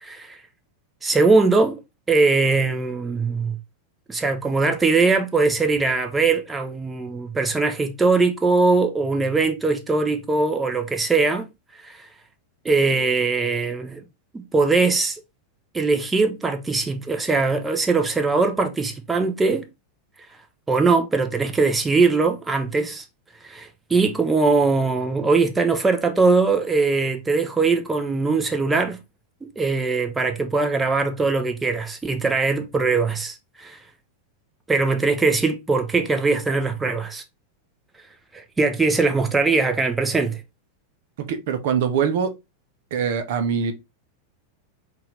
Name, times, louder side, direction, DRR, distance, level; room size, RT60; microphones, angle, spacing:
voice 1, 0.0-0.4 1.0-1.8 2.1-3.6 4.1-11.5 11.8-12.0 12.6-14.0 14.3-15.2 15.7-19.7 20.7-23.0 23.4-29.0 29.6-33.8 34.7-37.2 38.3-40.4, right 3 dB, 15° right, 0.7 m, -21 dB
voice 2, 41.3-42.3 42.9-43.7, right 7 dB, 60° right, 0.7 m, -23 dB
4.2 x 2.5 x 3.8 m
figure-of-eight pair, 90°, 0 cm